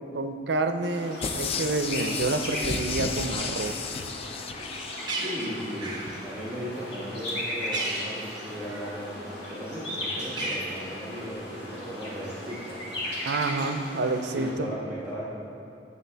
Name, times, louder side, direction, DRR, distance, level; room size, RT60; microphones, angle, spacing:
voice 1, 0.1-3.7 13.3-14.7, right 3 dB, 70° right, 8 dB, 0.5 m, -28 dB
sound 1, 0.8-14.5, left 1 dB, 65° left, 2.0 m, -37 dB
sound 2, 1.2-5.7 6.1-6.2, left 5 dB, 35° left, 0.3 m, -33 dB
Bird, 4.5-9.1 9.4-11.3, right 2 dB, 25° right, 0.9 m, -37 dB
voice 2, 5.2-12.8 14.3-15.2, equal, 10° right, -11 dB, 1.2 m, -36 dB
9.2 x 6.8 x 3.4 m, 2.7 s
head